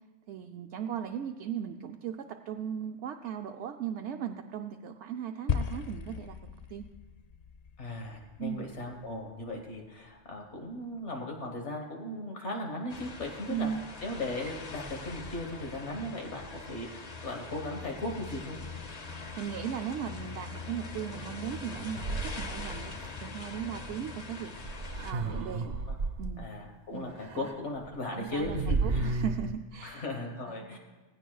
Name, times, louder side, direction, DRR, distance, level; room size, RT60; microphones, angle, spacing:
voice 1, 0.3-6.8 8.4-8.7 13.5-13.8 19.4-24.5 25.0-25.7 26.2-26.5 26.9-27.5 28.1-30.0 30.5-30.7, right 9 dB, 75° right, 4 dB, 0.9 m, -37 dB
sound 1, 5.5-9.9, left 6 dB, 55° left, 0.4 m, -37 dB
voice 2, 7.8-13.7 14.0-16.4 16.7-18.6 25.2-26.0 26.4-29.1 29.8-30.8, left 1 dB, 70° left, 2 dB, 1.6 m, -37 dB
sound 2, 12.9-25.1, left 3 dB, 40° left, 0.8 m, -42 dB
sound 3, 22.0-23.1 24.6-26.3 27.2-27.5 27.8-27.9 28.3-29.5, right 3 dB, 55° right, 1.2 m, -32 dB
18.5 x 16.0 x 2.3 m, 1.2 s
omnidirectional pair, 1.2 m